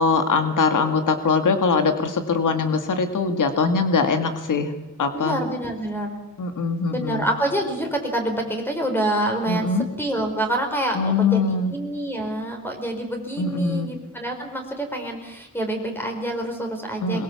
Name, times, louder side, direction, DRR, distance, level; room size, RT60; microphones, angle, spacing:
voice 1, 0.0-4.7 5.0-5.4 6.4-7.3 9.5-9.9 10.9-11.7 13.4-13.9 17.0-17.2, left 4 dB, 85° left, 7 dB, 2.0 m, -22 dB
voice 2, 5.1-6.2 6.9-17.2, right 1 dB, 5° left, 2 dB, 4.5 m, -27 dB
22.0 x 21.5 x 7.1 m, 1.0 s
wide cardioid pair, 150°, 31 cm